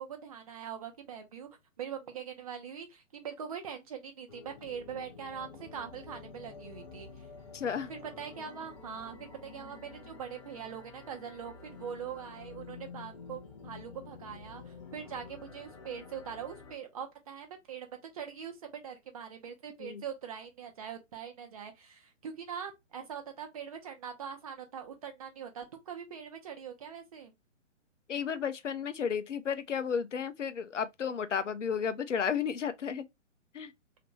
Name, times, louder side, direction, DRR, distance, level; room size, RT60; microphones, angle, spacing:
voice 1, 0.0-1.5 1.8-7.1 7.9-27.3, right 7 dB, 30° right, 0.8 m, -42 dB
sound 1, 4.3-16.8, left 5 dB, 25° left, 0.7 m, -49 dB
voice 2, 7.5-7.9 19.8-20.0 28.1-33.0 33.5-33.7, left 7 dB, 70° left, 0.7 m, -33 dB
3.2 x 2.9 x 3.0 m
figure-of-eight pair, 130°, 38 cm